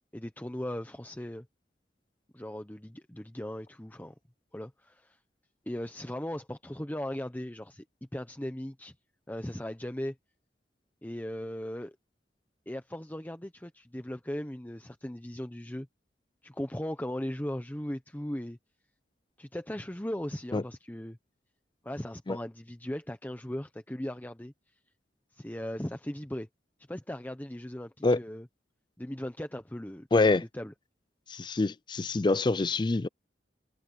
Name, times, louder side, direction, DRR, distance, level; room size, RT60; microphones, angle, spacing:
voice 1, 0.1-1.5 2.3-4.1 4.5-5.2 5.7-7.8 8.1-8.9 9.3-10.1 11.0-12.0 12.7-15.9 16.4-18.6 19.4-21.2 21.8-24.5 25.3-26.5 26.9-28.5 29.0-30.7, left 1 dB, 10° left, 0.8 m, -38 dB
voice 2, 30.1-30.4 31.3-33.1, left 3 dB, 25° left, 0.4 m, -25 dB
head